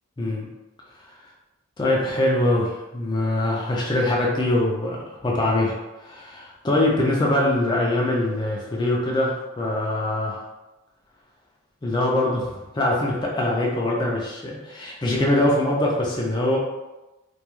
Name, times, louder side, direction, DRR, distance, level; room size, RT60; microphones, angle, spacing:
voice 1, 0.2-0.5 1.0-1.2 1.8-5.0 5.2-5.7 6.0-10.4 11.8-16.6, left 1 dB, 20° left, -3 dB, 0.3 m, -23 dB
2.3 x 2.2 x 2.9 m, 1.0 s
head